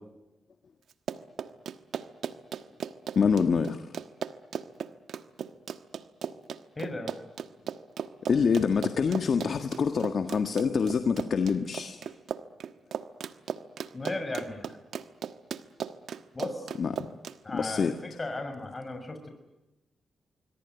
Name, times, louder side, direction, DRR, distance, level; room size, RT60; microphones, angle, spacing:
Run, 0.9-17.4, right 7 dB, 75° right, 1.3 m, -37 dB
voice 1, 3.2-3.9 8.3-12.0 16.8-17.1 17.5-17.9, left 6 dB, 60° left, 8 dB, 1.6 m, -26 dB
voice 2, 6.7-7.1 13.9-14.7 16.3-16.7 17.4-19.3, left 2 dB, 30° left, 7 dB, 6.4 m, -36 dB
26.0 x 22.5 x 9.3 m, 0.99 s
supercardioid pair, 45°, 0 cm